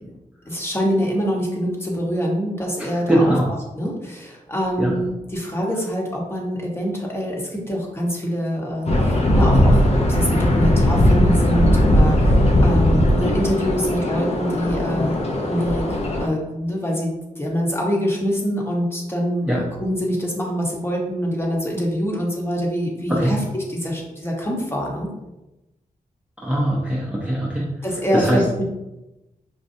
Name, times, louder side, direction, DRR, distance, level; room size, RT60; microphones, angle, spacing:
voice 1, 0.4-3.3 3.8-23.4 23.7-25.1 27.8-28.6, equal, 15° left, -2 dB, 1.0 m, -25 dB
voice 2, 2.8-3.5 4.8-4.9 19.5-19.6 23.1-23.3 26.4-27.7 28.1-28.4, right 1 dB, 10° right, -5 dB, 0.6 m, -21 dB
sound 1, 8.9-16.3, left 1 dB, 50° left, 0.6 m, -18 dB
5.1 x 2.2 x 2.6 m, 0.97 s
wide cardioid pair, 85°, 14 cm